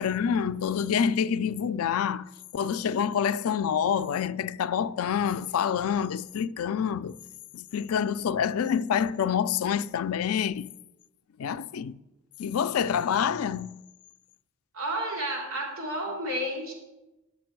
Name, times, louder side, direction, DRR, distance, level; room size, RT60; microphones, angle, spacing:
voice 1, 0.0-7.2 7.5-10.7 11.4-12.0 12.4-13.8, left 7 dB, 80° left, 0.4 m, -27 dB
voice 2, 14.7-16.7, right 1 dB, 70° right, 3.0 m, -31 dB
11.0 x 6.9 x 4.5 m
head